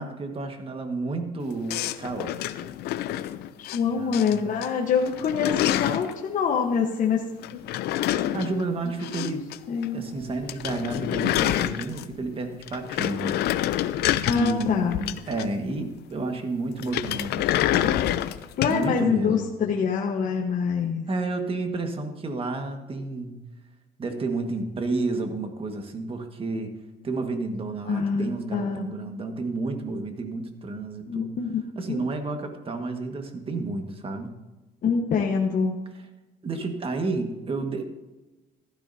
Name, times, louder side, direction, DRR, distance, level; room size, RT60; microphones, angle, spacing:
voice 1, 0.0-2.7 3.8-4.4 8.3-9.5 9.9-13.4 14.3-18.0 18.7-19.5 21.1-23.4 24.0-26.7 27.0-31.3 31.7-34.3 36.4-37.8, right 3 dB, 35° right, 5 dB, 1.7 m, -31 dB
sound 1, 1.7-3.8 4.1-4.7 4.9-6.1 7.4-9.6 9.8-9.9 10.2-10.3 10.5-12.2 12.6-15.7 16.8-18.8, left 13 dB, 75° left, 0.6 m, -27 dB
voice 2, 3.6-7.2 9.2-9.3 9.7-10.0 14.3-15.0 18.6-21.0 27.9-28.9 31.1-31.6 31.9-32.0 34.8-35.8, left 6 dB, 50° left, 0 dB, 1.2 m, -25 dB
15.0 x 13.0 x 2.8 m, 1.1 s
cardioid pair, 110°, 17 cm